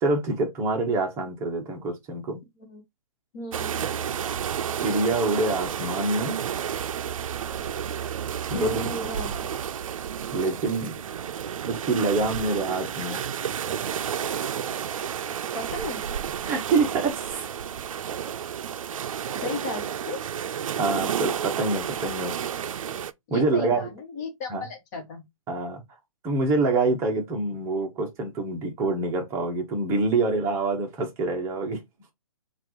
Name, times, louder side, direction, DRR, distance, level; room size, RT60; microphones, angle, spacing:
voice 1, 0.0-2.4 4.8-6.4 7.9-8.1 8.5-8.9 10.3-11.0 11.6-13.2 16.4-17.5 20.8-22.3 23.3-23.9 24.5-24.6 25.5-25.8 26.2-31.8, right 3 dB, 15° right, 0.8 m, -26 dB
voice 2, 3.3-3.8 8.5-9.6 15.5-16.0 19.4-20.2 23.3-25.2, left 2 dB, 30° left, 1.3 m, -35 dB
sound 1, 3.5-23.1, right 8 dB, 70° right, 0.5 m, -31 dB
5.7 x 2.5 x 3.1 m
hypercardioid pair, 155°, 18 cm